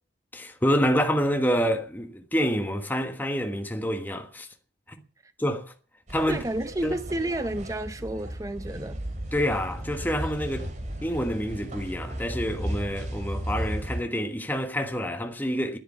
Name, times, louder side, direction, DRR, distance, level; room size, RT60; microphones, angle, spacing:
voice 1, 0.3-4.5 4.9-5.0 5.4-5.7 6.1-6.4 6.8-7.0 9.3-10.7 11.0-15.8, equal, 10° left, 1.4 m, -27 dB
sound 1, 6.1-14.0, equal, 40° right, 2.6 m, -35 dB
voice 2, 6.3-9.0, right 1 dB, 20° right, 0.7 m, -31 dB
10.0 x 10.0 x 9.4 m
head